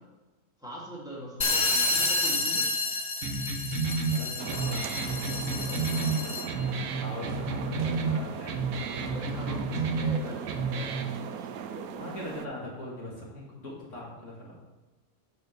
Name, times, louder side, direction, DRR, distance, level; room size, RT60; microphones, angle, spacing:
voice 1, 0.6-2.7 9.0-12.0, right 1 dB, 5° right, -4 dB, 2.2 m, -42 dB
sound 1, 1.4-6.6, left 3 dB, 35° left, 0.4 m, -30 dB
sound 2, 3.2-11.2, right 4 dB, 60° right, 1.2 m, -31 dB
voice 2, 3.8-5.3 7.0-8.6 12.0-14.6, left 2 dB, 55° left, -4 dB, 2.4 m, -41 dB
sound 3, 4.4-12.5, right 8 dB, 85° right, 1.1 m, -39 dB
9.1 x 5.4 x 6.6 m, 1.1 s
omnidirectional pair, 1.5 m